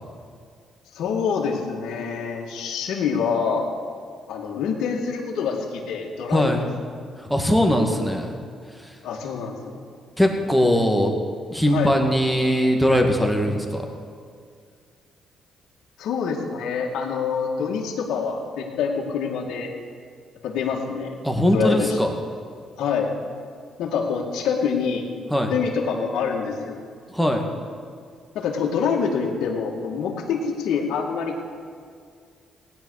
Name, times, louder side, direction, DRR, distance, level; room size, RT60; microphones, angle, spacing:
voice 1, 0.9-3.7 4.3-6.5 9.0-9.8 11.7-11.9 16.0-19.7 20.4-21.2 21.5-21.9 22.8-23.1 23.8-25.1 25.5-26.9 28.3-31.4, left 6 dB, 80° left, -1 dB, 2.1 m, -26 dB
voice 2, 6.3-6.7 7.2-8.3 8.7-9.0 10.2-11.1 11.5-13.9 21.2-22.1 25.3-25.5 27.1-27.5, equal, ahead, 2 dB, 2.1 m, -21 dB
17.0 x 10.5 x 6.6 m, 2.1 s
cardioid pair, 90°, 0 cm